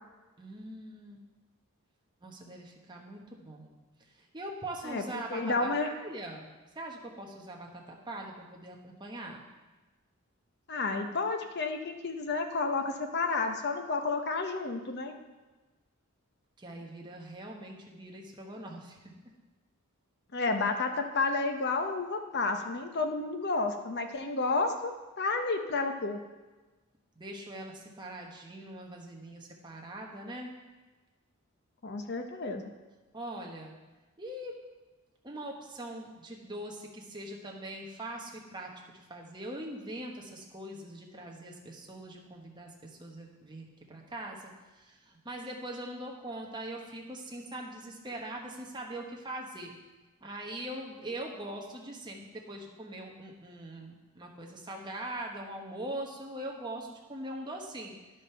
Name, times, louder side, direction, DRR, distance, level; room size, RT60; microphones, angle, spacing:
voice 1, 0.4-1.2 2.2-3.7 4.3-6.5 6.7-9.4 16.6-19.0 27.2-30.5 33.1-33.7 34.2-34.6 35.2-38.7 39.1-42.7 43.0-49.7 50.2-52.2 52.5-57.9, right 1 dB, 20° right, 0 dB, 1.1 m, -42 dB
voice 2, 4.8-5.9 10.7-15.1 20.3-26.2 31.8-32.7, left 3 dB, 50° left, 6 dB, 0.8 m, -31 dB
10.5 x 5.1 x 5.7 m, 1.2 s
head